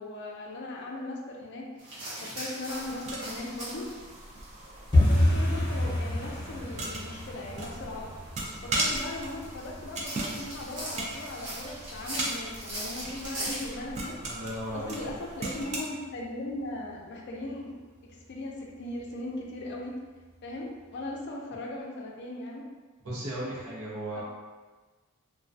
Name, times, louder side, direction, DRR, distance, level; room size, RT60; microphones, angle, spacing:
voice 1, 0.0-1.7 2.2-4.0 5.1-8.1 8.6-14.1 14.7-17.8 18.3-20.0 20.4-22.7 24.1-24.2, left 2 dB, 50° left, -1 dB, 0.4 m, -38 dB
sound 1, 1.8-13.7, right 1 dB, 55° right, 0.8 m, -42 dB
sound 2, 2.7-15.8, right 2 dB, 30° right, 0.3 m, -38 dB
sound 3, 4.9-15.6 15.9-16.6 16.9-17.2 17.4-17.8 18.1-18.2 18.7-19.2 19.6-19.7 20.2-20.3, left 1 dB, 20° left, 0.7 m, -31 dB
voice 2, 14.2-15.2 23.0-24.2, right 1 dB, 85° right, -6 dB, 0.8 m, -36 dB
2.3 x 2.2 x 2.5 m, 1.3 s
head